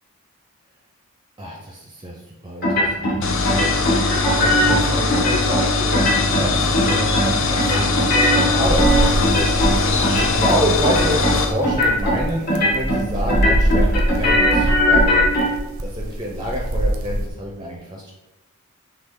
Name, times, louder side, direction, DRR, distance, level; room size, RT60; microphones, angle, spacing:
voice 1, 1.4-3.3 4.4-9.5 9.9-10.0 10.3-15.2 15.8-18.1, equal, 20° right, -1 dB, 0.5 m, -28 dB
sound 1, 2.6-3.2 3.4-4.8 5.1-5.6 5.9-6.5 6.7-7.3 7.6-9.8 10.0-10.6 10.8-11.3 11.6-12.2 12.5-13.0 13.3-15.4, left 1 dB, 45° left, 1.2 m, -19 dB
sound 2, 3.2-11.5, left 3 dB, 65° left, 0.5 m, -21 dB
sound 3, 8.6-17.3, right 1 dB, 80° right, 0.6 m, -24 dB
6.3 x 2.3 x 3.6 m, 1.1 s
head